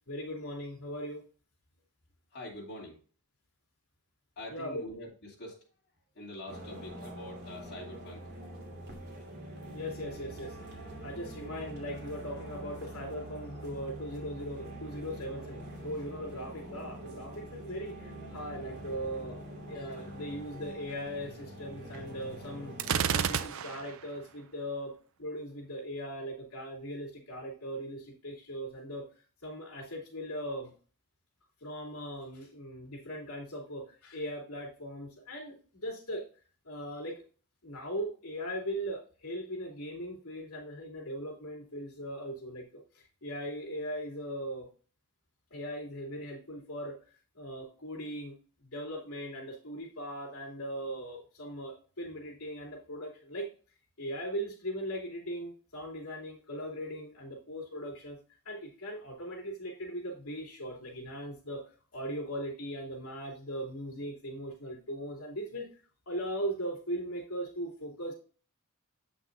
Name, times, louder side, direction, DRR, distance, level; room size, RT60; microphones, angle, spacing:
voice 1, 0.1-1.2 4.5-4.9 9.7-10.5 11.0-19.4 19.7-24.9 25.2-29.0 29.4-30.7 31.6-36.2 36.6-37.2 37.6-44.7 45.5-46.9 47.3-48.3 48.6-53.5 54.0-58.2 58.4-61.6 61.9-65.6 66.0-68.1, equal, 75° left, -3 dB, 3.3 m, -39 dB
voice 2, 2.3-3.0 4.4-5.6 6.1-8.3, left 1 dB, 50° left, -6 dB, 2.9 m, -44 dB
sound 1, 6.5-23.1, right 1 dB, 50° right, 2.4 m, -45 dB
Gunshot gunfire, 22.8-24.0, right 7 dB, 65° right, 0.5 m, -30 dB
8.3 x 5.9 x 2.7 m, 0.38 s
head